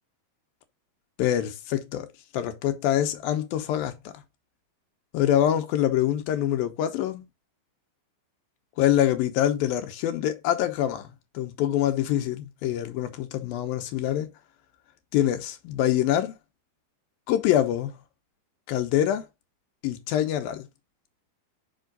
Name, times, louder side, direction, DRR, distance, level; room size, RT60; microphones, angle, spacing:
voice 1, 1.2-2.1 2.3-3.9 5.1-7.2 8.8-14.3 15.1-16.4 17.3-18.0 18.7-19.3 19.8-20.7, left 11 dB, 80° left, 2.7 m, -25 dB
5.6 x 5.6 x 3.9 m
omnidirectional pair, 4.3 m